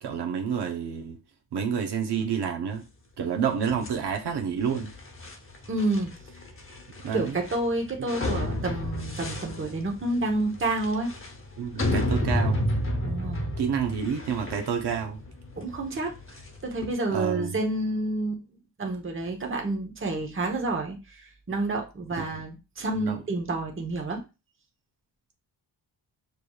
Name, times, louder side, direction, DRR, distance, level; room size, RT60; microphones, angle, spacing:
voice 1, 0.0-1.2 1.5-2.8 3.2-4.9 7.0-7.4 8.0-8.1 11.6-12.7 13.6-15.2 17.1-17.6 22.9-23.2, right 7 dB, 65° right, 0.8 m, -29 dB
sound 1, 3.7-16.9, left 1 dB, 30° left, 0.8 m, -32 dB
voice 2, 5.7-6.1 7.1-11.1 13.0-13.5 15.6-18.4 18.8-24.2, right 2 dB, 30° right, 1.0 m, -29 dB
6.7 x 3.1 x 2.3 m
wide cardioid pair, 150°, 43 cm